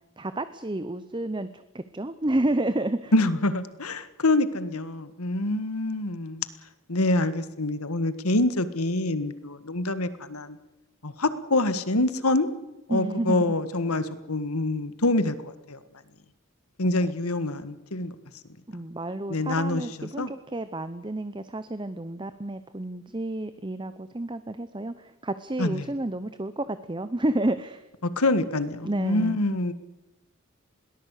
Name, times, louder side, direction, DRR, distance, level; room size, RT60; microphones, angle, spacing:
voice 1, 0.2-3.1 12.9-13.6 18.7-27.9 28.8-29.4, right 1 dB, 20° right, 12 dB, 0.8 m, -30 dB
voice 2, 3.1-6.5 6.9-10.6 11.0-12.5 12.9-15.8 16.8-18.1 19.3-20.3 25.6-25.9 28.0-29.7, left 2 dB, 85° left, 13 dB, 1.7 m, -26 dB
21.5 x 18.5 x 8.3 m, 0.99 s
head